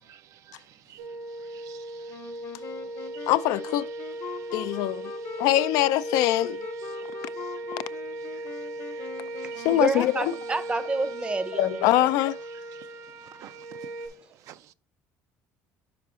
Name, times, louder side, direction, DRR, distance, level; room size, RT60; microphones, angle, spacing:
sound 1, 1.0-14.1, right 2 dB, 90° right, 1.2 m, -38 dB
voice 1, 1.5-2.2 3.0-3.3 6.9-7.0 8.9-9.1 9.5-9.7 13.4-13.5 14.5-14.7, right 11 dB, 60° right, 0.4 m, -50 dB
Wind instrument woodwind instrument, 2.1-10.8, left 6 dB, 50° left, 0.8 m, -41 dB
voice 2, 3.3-3.9 4.5-5.1 5.4-6.6 9.6-10.4 11.5-12.4, left 14 dB, 75° left, 0.3 m, -23 dB
voice 3, 9.7-11.8, right 3 dB, 20° right, 0.6 m, -28 dB
5.9 x 4.6 x 3.6 m
cardioid pair, 115°, 6 cm